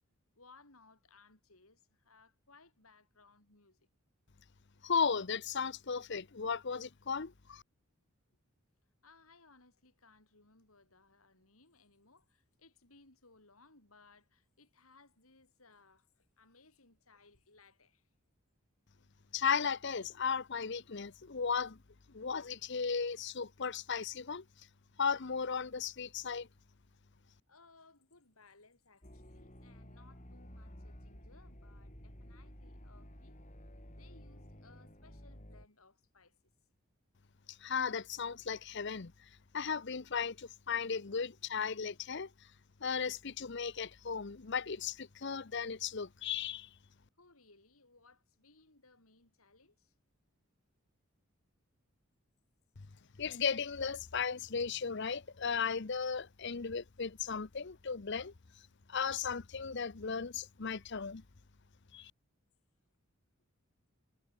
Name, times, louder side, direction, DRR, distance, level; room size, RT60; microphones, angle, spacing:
voice 1, 0.3-3.8 9.0-18.1 27.5-33.4 33.9-36.5 47.2-49.9, left 3 dB, 80° left, 6.0 m, -64 dB
voice 2, 4.8-7.6 19.3-21.8 22.1-24.4 25.0-26.5 37.6-39.1 39.5-42.3 42.8-46.7 53.2-58.3 58.9-61.2 61.9-62.1, left 6 dB, 55° left, 0.8 m, -36 dB
sound 1, 29.0-35.7, equal, 35° left, 7.7 m, -53 dB
head